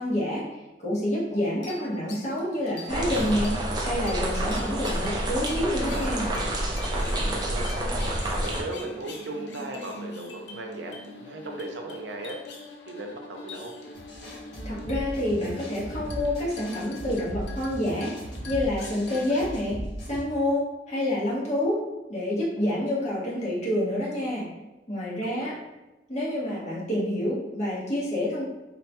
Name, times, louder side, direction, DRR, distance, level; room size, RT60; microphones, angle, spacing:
voice 1, 0.0-3.6 3.8-6.3 14.6-18.1 18.4-19.8 20.1-21.8 22.1-24.5 24.9-25.5 26.1-28.5, left 1 dB, 40° left, -6 dB, 1.0 m, -28 dB
sound 1, 1.3-19.7, left 2 dB, 85° left, 0.5 m, -44 dB
sound 2, 2.9-8.6, right 1 dB, 25° right, 0.5 m, -28 dB
voice 2, 7.0-7.7 8.4-12.4 12.9-13.7 25.2-25.6, right 2 dB, 85° right, 3 dB, 0.5 m, -37 dB
sound 3, 13.9-20.2, right 1 dB, 65° left, 1.2 m, -37 dB
3.7 x 2.2 x 2.9 m, 1.0 s
head